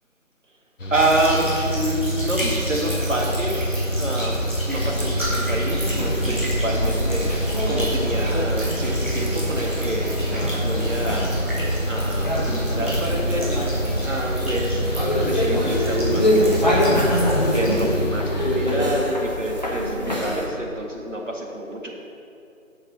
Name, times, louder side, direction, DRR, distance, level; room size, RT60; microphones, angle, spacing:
Mechanical fan, 0.8-18.9, right 1 dB, 65° left, 1.0 m, -28 dB
sound 1, 0.9-17.9, equal, 10° right, 1.5 m, -29 dB
voice 1, 0.9-7.3 7.7-11.4 11.9-13.6 13.9-14.9 15.2-17.0 17.4-21.9, right 1 dB, 65° right, -1 dB, 2.1 m, -27 dB
sound 2, 4.7-20.5, equal, 30° left, 1.3 m, -25 dB
9.2 x 6.6 x 6.3 m, 2.7 s
figure-of-eight pair, 165°, 41 cm